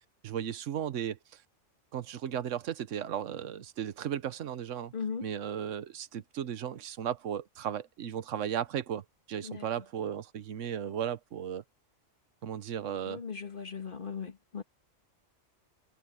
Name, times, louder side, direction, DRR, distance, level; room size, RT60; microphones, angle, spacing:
voice 1, 0.2-1.4 1.9-4.9 5.2-11.6 12.4-13.2, right 9 dB, 75° right, 1.2 m, -35 dB
voice 2, 4.9-5.3 9.4-9.6 13.1-14.6, left 6 dB, 40° left, 1.9 m, -38 dB
omnidirectional pair, 1.3 m